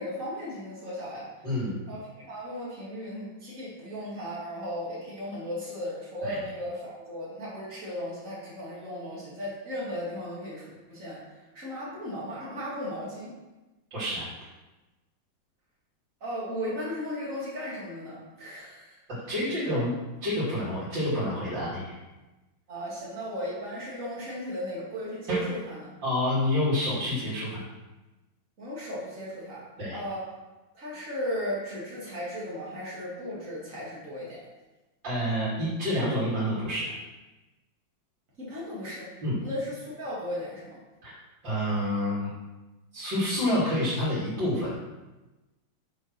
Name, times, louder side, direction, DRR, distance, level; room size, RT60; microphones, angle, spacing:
voice 1, 0.0-1.3 1.9-11.2 11.5-13.3 16.2-19.0 19.5-19.8 22.7-25.9 28.6-29.6 29.9-30.2 30.7-34.4 38.4-39.1 39.4-40.8, equal, 40° right, -7 dB, 3.1 m, -36 dB
voice 2, 1.4-1.8 3.4-3.5 6.2-6.4 13.9-14.3 19.3-19.9 20.2-21.9 25.3-25.4 26.0-27.6 29.8-30.0 35.0-36.9 39.2-39.4 41.0-41.2 41.4-42.3 42.9-44.7, left 1 dB, 65° right, -12 dB, 3.9 m, -28 dB
8.0 x 4.9 x 6.1 m, 1.1 s
omnidirectional pair, 2.2 m